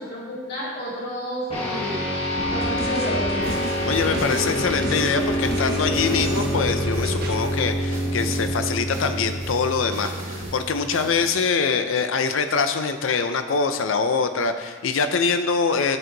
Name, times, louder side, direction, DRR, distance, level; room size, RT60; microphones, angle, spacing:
voice 1, 0.0-2.0 2.5-3.6, equal, 55° left, -6 dB, 2.5 m, -31 dB
sound 1, 1.5-11.2, equal, 30° left, 1.3 m, -27 dB
sound 2, 2.4-7.5, right 1 dB, 50° right, 1.1 m, -32 dB
sound 3, 3.4-11.4, right 1 dB, 90° right, 2.1 m, -39 dB
voice 2, 3.9-16.0, left 5 dB, 80° left, 9 dB, 0.5 m, -24 dB
11.0 x 4.5 x 3.8 m, 1.4 s
head